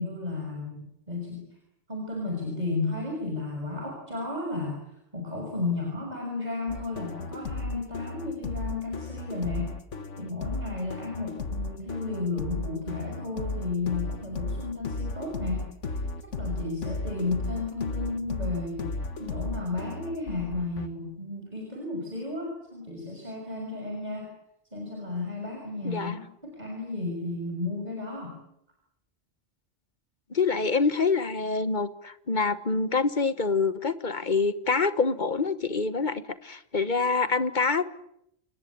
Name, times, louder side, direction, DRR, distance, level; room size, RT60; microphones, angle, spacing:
voice 1, 0.0-1.5 1.9-4.8 5.1-9.8 10.2-16.0 16.4-24.3 24.7-28.3, left 3 dB, 35° right, 1 dB, 6.3 m, -33 dB
sound 1, 6.7-20.9, left 3 dB, 85° left, 1.8 m, -34 dB
voice 2, 25.8-26.2 30.3-37.8, left 4 dB, 40° left, 13 dB, 1.4 m, -26 dB
28.5 x 19.5 x 8.5 m, 0.77 s
omnidirectional pair, 1.2 m